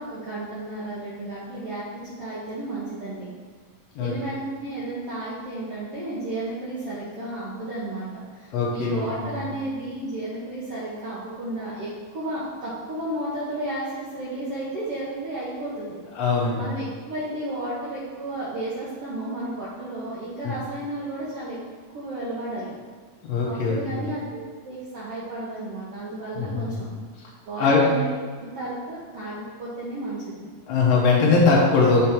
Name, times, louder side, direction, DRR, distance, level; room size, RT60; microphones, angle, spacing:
voice 1, 0.0-1.8 2.2-3.3 4.0-16.0 16.6-21.6 21.9-22.8 23.4-26.9 27.5-28.1 28.4-30.4, right 1 dB, 70° right, -8 dB, 1.4 m, -33 dB
voice 2, 8.5-9.3 16.2-16.6 20.4-20.5 23.3-23.8 26.4-26.8 27.6-27.8 30.7-32.1, left 4 dB, 75° left, -4 dB, 1.5 m, -21 dB
8.3 x 3.6 x 4.4 m, 1.5 s
omnidirectional pair, 4.2 m